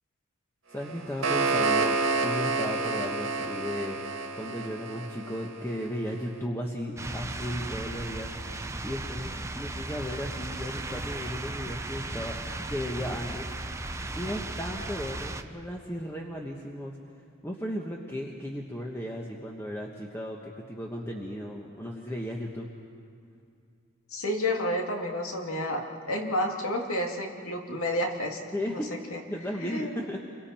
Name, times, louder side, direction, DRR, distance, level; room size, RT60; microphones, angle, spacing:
voice 1, 0.7-2.0 2.2-4.0 4.3-12.4 12.7-13.9 14.2-17.0 17.4-22.7 28.5-28.9 29.3-30.2, equal, 10° left, -1 dB, 1.2 m, -35 dB
sound 1, 0.8-5.9, right 3 dB, 65° right, 2.0 m, -29 dB
sound 2, 7.0-15.4, right 2 dB, 15° right, 0.7 m, -36 dB
voice 2, 24.1-28.4 28.7-28.8 29.1-29.2 29.6-29.9, left 1 dB, 80° left, 1 dB, 2.6 m, -30 dB
29.5 x 23.5 x 4.4 m, 2.3 s
head